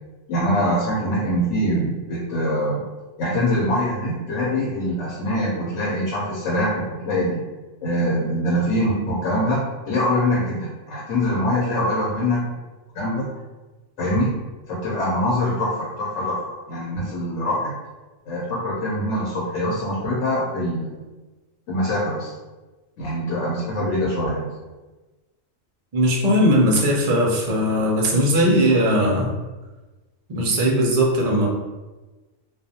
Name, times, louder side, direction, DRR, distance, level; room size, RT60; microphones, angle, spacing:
voice 1, 0.3-2.8 3.2-7.4 7.8-9.6 9.9-12.5 12.9-13.3 14.0-14.3 14.7-16.4 16.7-17.7 18.3-20.9 21.7-22.3 23.0-24.5, equal, 75° left, -6 dB, 1.1 m, -23 dB
voice 2, 25.9-29.3 30.3-31.5, equal, 60° right, -3 dB, 0.4 m, -19 dB
2.4 x 2.2 x 2.7 m, 1.2 s
omnidirectional pair, 1.4 m